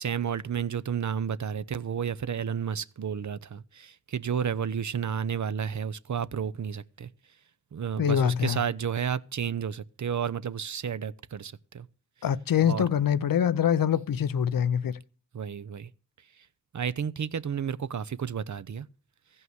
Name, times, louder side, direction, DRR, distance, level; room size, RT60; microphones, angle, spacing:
voice 1, 0.0-7.1 7.7-11.9 12.6-12.9 15.3-15.9 16.7-18.9, right 7 dB, 60° right, 0.6 m, -31 dB
voice 2, 8.0-8.6 12.2-15.0, left 8 dB, 80° left, 0.6 m, -24 dB
14.5 x 5.5 x 7.8 m
cardioid pair, 40°, 33 cm